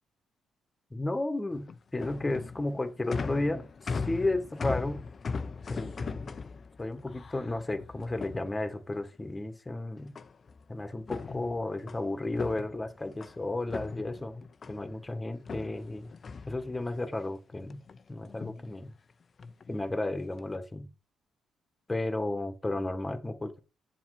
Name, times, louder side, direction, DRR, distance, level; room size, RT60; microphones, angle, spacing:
voice 1, 0.9-1.7 1.9-5.0 5.7-6.3 6.8-10.1 10.7-16.1 16.5-17.8 18.1-18.9 19.7-20.9 21.9-23.6, left 2 dB, 15° left, 1.6 m, -33 dB
sound 1, 1.5-9.0 10.2-10.6 11.0-13.4 13.7-15.0 15.5-17.1 17.5-18.0 18.3-18.7 19.4-19.7 20.3-20.6, left 4 dB, 40° left, 0.7 m, -39 dB
7.3 x 7.2 x 5.0 m
cardioid pair, 90°, 0 cm